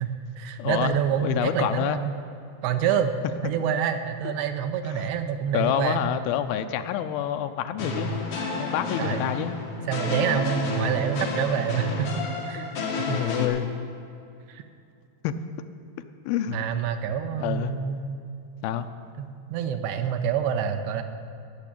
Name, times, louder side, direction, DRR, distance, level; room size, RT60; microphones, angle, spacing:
voice 1, 0.0-2.1 2.6-3.2 3.4-6.0 9.0-9.3 9.9-12.7 13.0-13.2 14.5-14.6 16.5-18.0 19.2-21.0, right 8 dB, 80° right, 7 dB, 2.8 m, -27 dB
voice 2, 0.6-2.0 4.2-4.3 4.9-5.1 5.5-8.1 8.6-9.6 13.1-13.7 15.2-15.3 16.3-16.6 17.4-17.8 18.6-18.9, left 10 dB, 80° left, 8 dB, 2.2 m, -27 dB
sound 1, 7.8-13.5, left 3 dB, 55° left, 1.7 m, -30 dB
16.0 x 6.6 x 9.9 m, 2.6 s
omnidirectional pair, 4.8 m